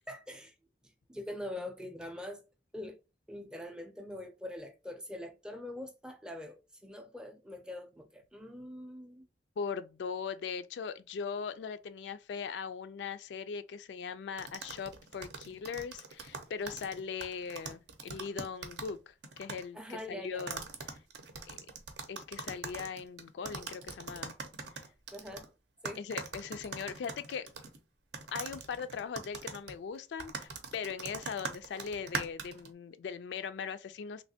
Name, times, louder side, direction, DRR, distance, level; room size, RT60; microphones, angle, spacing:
voice 1, 0.1-0.6 1.1-2.4 2.7-3.0 3.3-9.3 19.7-20.6 25.1-25.5 25.8-26.1, left 1 dB, 5° right, 0.4 m, -43 dB
voice 2, 9.6-20.6 20.9-21.0 21.5-21.6 22.1-24.3 26.0-27.5 28.3-34.2, left 6 dB, 75° left, 0.3 m, -40 dB
sound 1, 14.4-19.0 19.2-19.6 20.4-25.5 25.8-27.8 28.1-32.7, right 4 dB, 75° right, 0.6 m, -42 dB
3.2 x 2.8 x 2.7 m
head